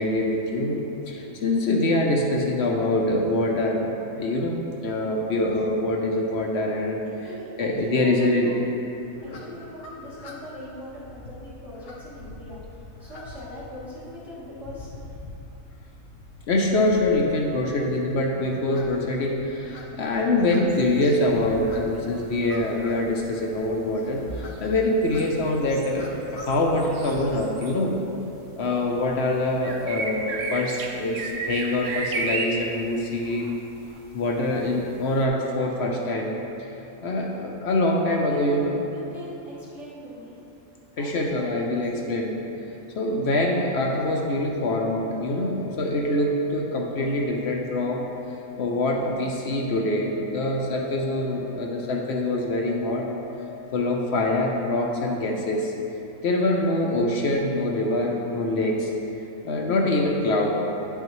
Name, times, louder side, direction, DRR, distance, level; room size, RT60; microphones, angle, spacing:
voice 1, 0.0-7.0 7.6-8.5 9.3-9.4 16.5-28.0 28.6-33.5 34.1-36.3 37.0-38.8 41.0-42.4 43.0-48.1 48.6-53.1 53.7-55.7 56.2-58.9 59.4-60.5, left 1 dB, 60° left, 0 dB, 0.8 m, -24 dB
voice 2, 7.0-8.6 9.2-15.2 38.3-40.4 41.0-42.1, left 1 dB, 30° right, -11 dB, 1.4 m, -41 dB
sound 1, 8.9-27.5, left 2 dB, 80° left, 1.3 m, -44 dB
sound 2, 20.7-21.7 22.0-28.3 28.5-35.3, right 3 dB, 65° right, 1.0 m, -34 dB
Organ, 44.0-54.7, left 15 dB, 50° right, 1.7 m, -44 dB
9.6 x 5.7 x 3.0 m, 2.9 s
omnidirectional pair, 1.5 m